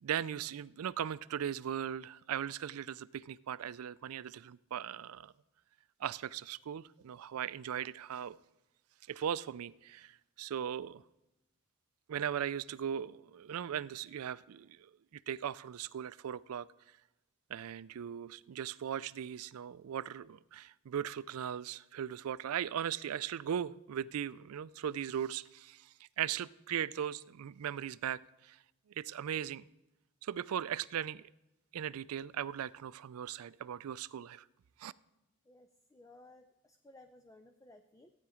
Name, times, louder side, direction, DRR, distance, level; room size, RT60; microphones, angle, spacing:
voice 1, 0.0-5.3 6.0-8.4 9.1-11.0 12.1-16.7 17.5-28.6 29.0-29.6 30.2-31.3 31.7-34.4 34.8-34.9, right 9 dB, 75° right, 0.4 m, -38 dB
voice 2, 35.5-38.1, left 2 dB, 15° left, 0.4 m, -58 dB
15.0 x 9.4 x 4.9 m
head